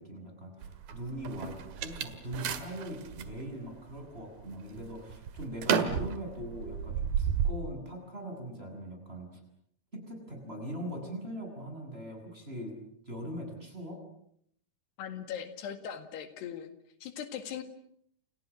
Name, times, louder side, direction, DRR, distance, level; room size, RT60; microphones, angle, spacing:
voice 1, 0.0-9.4 9.9-12.7 13.0-14.0, right 1 dB, 15° right, 3 dB, 8.1 m, -41 dB
sound 1, 0.6-3.3 3.9-4.4 4.8-7.5, right 8 dB, 70° right, 3.6 m, -32 dB
voice 2, 15.0-16.7 17.0-17.6, left 8 dB, 85° left, 8 dB, 4.1 m, -39 dB
30.0 x 29.5 x 6.4 m, 0.69 s
omnidirectional pair, 4.6 m